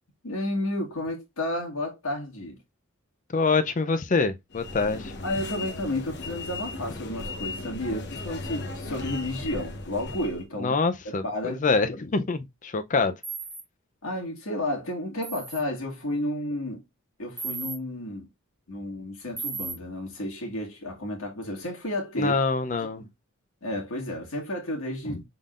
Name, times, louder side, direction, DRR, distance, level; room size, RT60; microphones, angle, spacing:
voice 1, 0.2-2.6 5.2-10.7 11.0-11.8 14.0-16.8 17.2-18.3 18.7-22.3 23.0-23.1 23.6-25.3, left 1 dB, 85° left, 1.9 m, -32 dB
voice 2, 3.3-5.1 10.6-13.1 22.2-23.0 25.0-25.2, left 4 dB, 40° left, 0.6 m, -25 dB
sound 1, 4.5-10.5, left 2 dB, 55° left, 1.0 m, -36 dB
sound 2, 13.2-13.6 15.2-15.6 17.4-17.8 19.4-19.7, right 5 dB, 10° right, 1.3 m, -34 dB
5.5 x 3.8 x 2.5 m
head